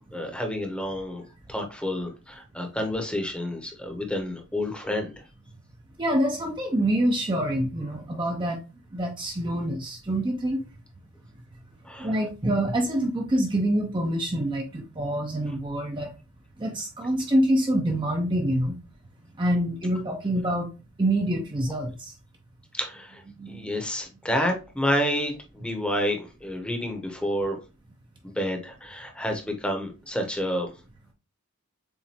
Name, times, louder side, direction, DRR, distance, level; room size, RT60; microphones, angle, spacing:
voice 1, 0.1-1.2 1.5-5.2 11.8-12.1 22.7-27.6 28.2-30.7, equal, 5° left, 0.9 m, -29 dB
voice 2, 6.0-8.6 8.9-10.6 12.0-16.1 16.6-18.8 19.4-20.7 21.0-22.1 23.3-23.7, right 1 dB, 20° right, 0.6 m, -26 dB
7.1 x 2.6 x 2.8 m
head